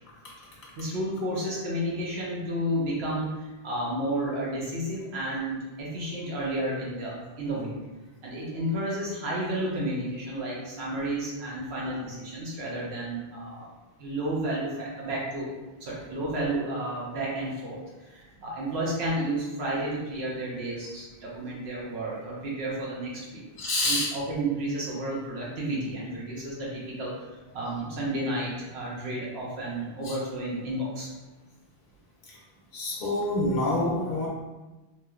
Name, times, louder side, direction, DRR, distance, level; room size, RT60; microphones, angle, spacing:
voice 1, 0.8-7.7 8.2-13.7 14.0-15.5 15.8-23.4 23.8-27.2 27.5-31.1, right 1 dB, 80° right, -5 dB, 1.0 m, -31 dB
voice 2, 23.6-24.1 30.0-30.1 32.7-34.3, left 2 dB, 55° left, -4 dB, 0.6 m, -26 dB
3.0 x 2.7 x 2.3 m, 1.1 s
omnidirectional pair, 1.1 m